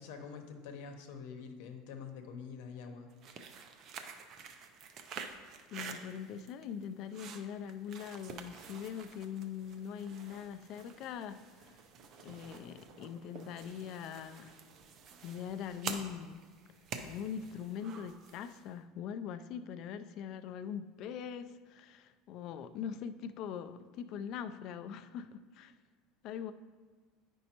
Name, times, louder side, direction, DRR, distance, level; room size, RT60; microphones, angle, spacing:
voice 1, 0.0-3.1, left 6 dB, 80° left, 5 dB, 0.8 m, -46 dB
sound 1, 3.1-18.7, right 6 dB, 40° right, 0.5 m, -48 dB
voice 2, 5.7-11.7 12.2-14.5 15.2-16.4 17.0-25.7 26.2-26.5, left 8 dB, 45° left, 10 dB, 0.3 m, -42 dB
9.1 x 5.3 x 2.9 m, 1.4 s
cardioid pair, 160°, 0 cm